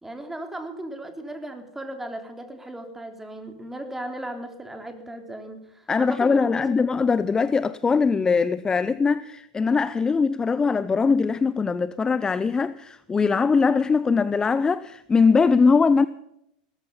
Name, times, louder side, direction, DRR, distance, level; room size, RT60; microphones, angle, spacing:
voice 1, 0.0-6.7, right 1 dB, 5° right, 3.5 m, -36 dB
voice 2, 5.9-16.1, left 5 dB, 15° left, 0.6 m, -21 dB
18.0 x 14.0 x 5.6 m
hypercardioid pair, 105°, 4 cm